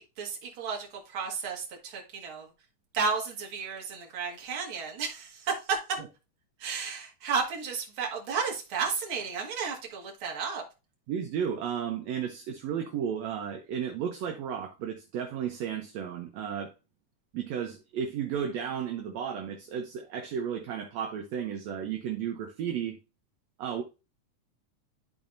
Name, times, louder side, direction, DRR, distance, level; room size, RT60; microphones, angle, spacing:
voice 1, 0.0-2.5 2.9-5.8 6.6-10.6, right 5 dB, 50° right, 2.2 m, -33 dB
voice 2, 11.1-16.7 17.3-23.0 23.6-23.8, right 8 dB, 70° right, 1.9 m, -33 dB
12.0 x 4.2 x 2.6 m
omnidirectional pair, 3.5 m